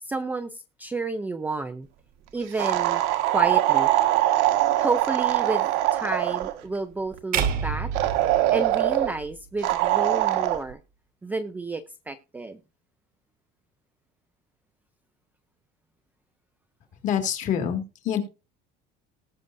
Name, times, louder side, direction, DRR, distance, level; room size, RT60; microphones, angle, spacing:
voice 1, 0.0-1.9 2.3-3.9 4.8-7.9 8.5-10.8 11.2-12.6, right 3 dB, 10° right, 8 dB, 0.4 m, -31 dB
sound 1, 2.6-6.6 7.9-9.1 9.6-10.6, right 14 dB, 85° right, 1.6 m, -22 dB
sound 2, 7.3-9.6, right 7 dB, 50° right, 1.3 m, -29 dB
voice 2, 17.0-18.2, left 9 dB, 40° left, 6 dB, 2.1 m, -26 dB
19.0 x 6.5 x 2.6 m, 0.31 s
cardioid pair, 175°, 20 cm